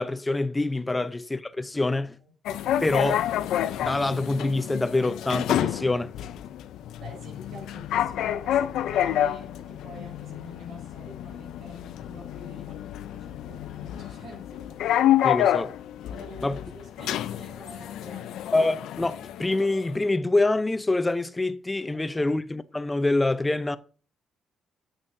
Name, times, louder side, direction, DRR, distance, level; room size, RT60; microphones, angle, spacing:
voice 1, 0.0-2.2 2.8-3.2 3.8-6.1 15.2-15.7 16.4-16.6 18.5-23.8, left 2 dB, 15° left, 0.6 m, -25 dB
sound 1, 2.5-20.0, left 11 dB, 80° left, 0.5 m, -29 dB
voice 2, 7.0-15.0 16.1-18.5 21.9-22.4, equal, 75° right, 5.0 m, -47 dB
9.5 x 8.1 x 2.7 m
cardioid pair, 90°, 0 cm